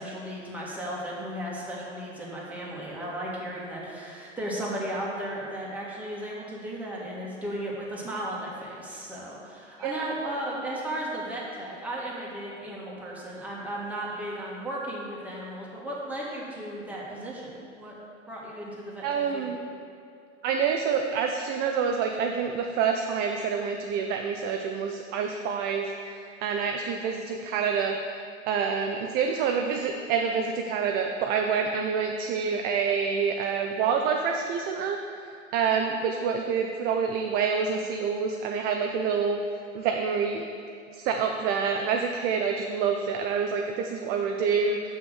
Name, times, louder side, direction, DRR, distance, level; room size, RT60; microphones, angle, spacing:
voice 1, 0.0-17.5 17.8-18.0 18.3-19.5 35.9-36.0, right 1 dB, 5° right, -5 dB, 1.8 m, -35 dB
voice 2, 19.0-19.6 20.4-39.4 39.7-40.5 40.9-44.8, right 6 dB, 25° right, 3 dB, 0.4 m, -27 dB
6.5 x 5.8 x 6.3 m, 2.4 s
figure-of-eight pair, 95°, 38 cm